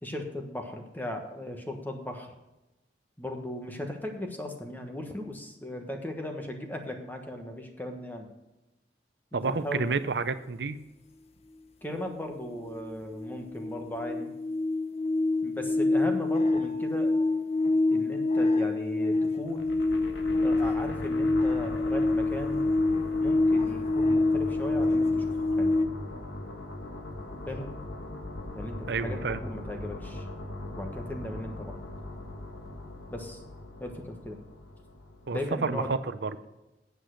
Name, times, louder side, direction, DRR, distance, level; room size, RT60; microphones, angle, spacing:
voice 1, 0.0-2.3 3.2-8.3 9.3-9.9 11.8-14.3 15.4-17.2 17.9-19.7 20.4-22.7 23.2-25.2 25.6-25.7 27.5-27.7 28.5-30.2 30.8-31.7 33.1-33.4 33.8-34.4 35.3-35.9, left 1 dB, 10° left, 3 dB, 1.2 m, -37 dB
voice 2, 9.3-10.8 28.9-29.4 35.3-36.3, right 4 dB, 70° right, 12 dB, 0.6 m, -30 dB
sound 1, 12.3-12.4 12.7-25.9, left 2 dB, 35° left, 0.7 m, -26 dB
sound 2, 19.5-35.7, left 1 dB, 85° left, 1.6 m, -40 dB
8.8 x 8.1 x 6.4 m, 1.0 s
head